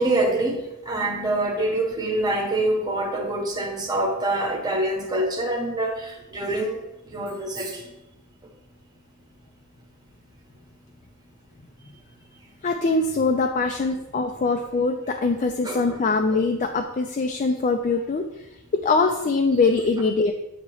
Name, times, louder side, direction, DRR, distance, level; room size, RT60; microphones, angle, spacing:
voice 1, 0.0-6.8 7.1-7.8 15.6-16.0 16.3-16.4, right 2 dB, 20° right, 1 dB, 1.1 m, -25 dB
voice 2, 12.6-18.2 18.7-20.3, left 3 dB, 35° left, 4 dB, 0.4 m, -22 dB
8.2 x 2.9 x 4.7 m, 0.93 s
head